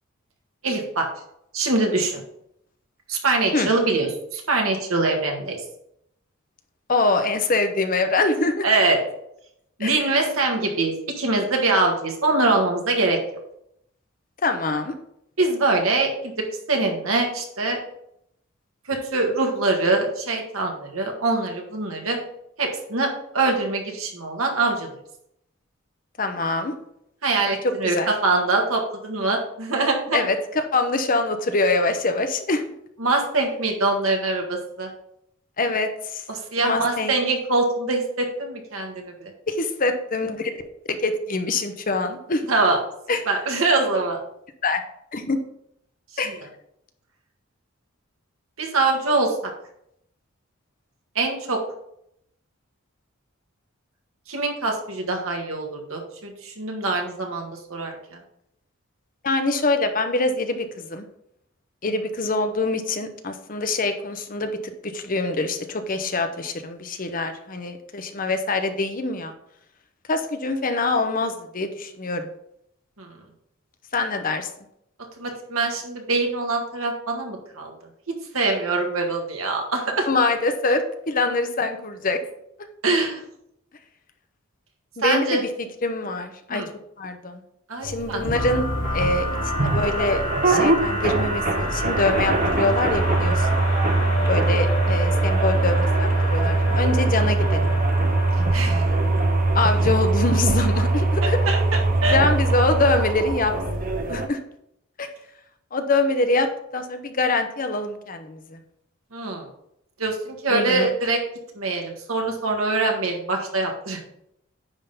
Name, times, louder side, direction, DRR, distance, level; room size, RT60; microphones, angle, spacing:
voice 1, 0.6-1.1 1.5-2.2 3.1-5.6 8.6-9.0 9.8-13.2 15.4-16.3 16.7-17.8 18.9-22.2 22.6-23.1 23.3-24.9 27.2-30.2 33.0-34.9 36.3-39.3 42.5-42.8 43.3-44.2 48.6-49.3 51.2-51.6 54.3-58.2 73.0-73.1 75.2-77.7 78.3-80.1 82.8-83.2 85.0-85.4 86.5-86.7 87.7-88.2 94.2-94.3 98.5-98.9 101.2-102.2 109.1-109.5 110.0-111.2 111.6-114.0, right 3 dB, 75° right, 2 dB, 1.8 m, -23 dB
voice 2, 6.9-8.7 9.8-10.1 14.4-14.9 26.2-26.7 27.6-28.1 30.1-32.6 35.6-36.2 36.6-37.1 39.5-40.5 40.9-42.4 43.1-43.3 44.6-44.8 45.1-45.4 46.2-46.4 59.2-61.1 61.8-69.3 70.1-72.3 73.9-74.5 80.1-82.2 85.0-85.5 85.8-86.6 87.0-87.4 87.8-88.6 88.9-89.3 89.5-93.6 94.3-97.6 99.5-101.4 102.0-103.5 103.8-104.4 105.0-105.1 105.7-108.6 110.5-110.9, left 2 dB, 40° left, 7 dB, 0.8 m, -24 dB
sound 1, 87.8-104.3, right 2 dB, 40° right, 0.9 m, -22 dB
sound 2, 88.3-100.0, equal, 70° left, 2.5 m, -30 dB
9.9 x 3.8 x 5.4 m, 0.75 s
head